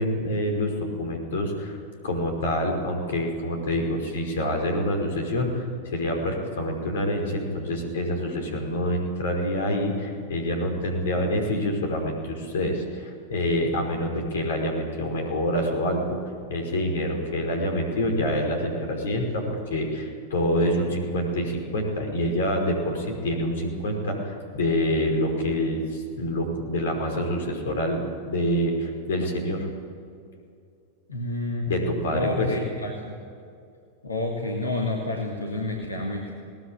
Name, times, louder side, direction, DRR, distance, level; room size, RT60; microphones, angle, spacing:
voice 1, 0.0-1.8 2.0-16.2 16.5-29.7 31.7-32.5, equal, 60° left, 3 dB, 5.2 m, -26 dB
voice 2, 31.1-31.7 32.1-33.1 34.0-36.3, left 2 dB, 75° left, 0 dB, 2.5 m, -29 dB
21.0 x 19.0 x 8.9 m, 2.4 s
figure-of-eight pair, 90°, 0 cm